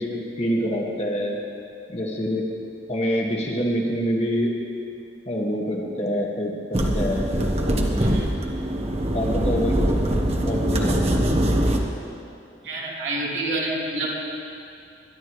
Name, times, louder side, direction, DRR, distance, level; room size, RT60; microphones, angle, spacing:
voice 1, 0.0-1.4 1.9-2.4 2.9-4.5 5.3-7.3 9.1-9.8 10.4-11.3, equal, 40° left, -1 dB, 1.8 m, -26 dB
sound 1, 6.7-11.8, right 1 dB, 35° right, 1.1 m, -22 dB
voice 2, 12.6-14.3, right 2 dB, 90° right, -5 dB, 3.1 m, -28 dB
22.5 x 11.0 x 3.2 m, 2.5 s
head